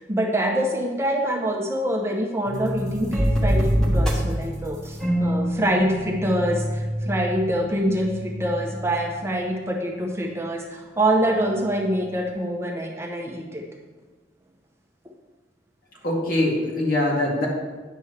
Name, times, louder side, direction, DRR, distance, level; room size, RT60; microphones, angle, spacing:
voice 1, 0.1-13.6, right 1 dB, 15° right, 0 dB, 0.7 m, -25 dB
sound 1, 2.4-9.2, equal, 5° left, 1.4 m, -26 dB
voice 2, 16.0-17.5, left 1 dB, 55° left, -4 dB, 2.2 m, -23 dB
10.0 x 7.0 x 3.3 m, 1.3 s
head